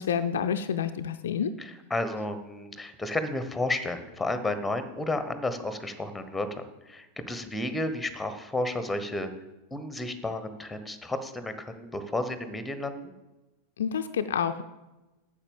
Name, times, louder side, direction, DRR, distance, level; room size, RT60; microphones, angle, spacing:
voice 1, 0.0-1.5 13.8-14.6, left 7 dB, 60° left, 9 dB, 0.5 m, -28 dB
voice 2, 1.6-9.3 9.7-13.1, left 2 dB, 5° left, 11 dB, 1.1 m, -32 dB
8.9 x 7.5 x 7.1 m, 1.1 s
figure-of-eight pair, 90°, 0 cm